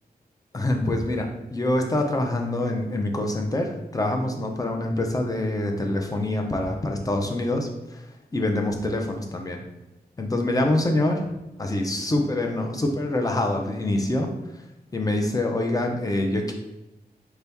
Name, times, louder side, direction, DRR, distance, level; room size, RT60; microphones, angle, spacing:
voice 1, 0.5-9.6 10.2-11.3 11.6-14.3 14.9-16.5, left 1 dB, 20° left, 3 dB, 0.6 m, -25 dB
4.5 x 2.7 x 3.5 m, 0.96 s
wide cardioid pair, 135°, 16 cm